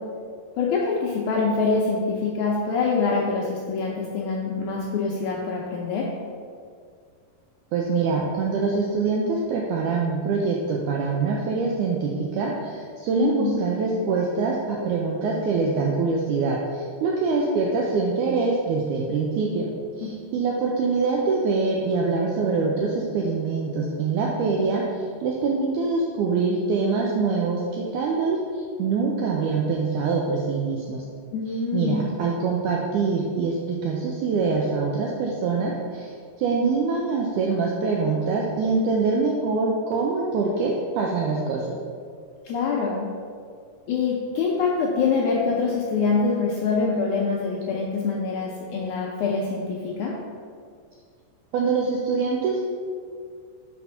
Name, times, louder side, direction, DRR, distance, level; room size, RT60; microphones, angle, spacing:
voice 1, 0.6-6.1 13.2-13.6 31.3-32.0 42.5-43.1 43.9-50.1, left 4 dB, 80° left, -3 dB, 1.8 m, -25 dB
voice 2, 7.7-31.0 31.7-41.8 51.5-52.6, right 4 dB, 90° right, -2 dB, 1.7 m, -24 dB
5.7 x 4.3 x 5.5 m, 2.1 s
omnidirectional pair, 4.2 m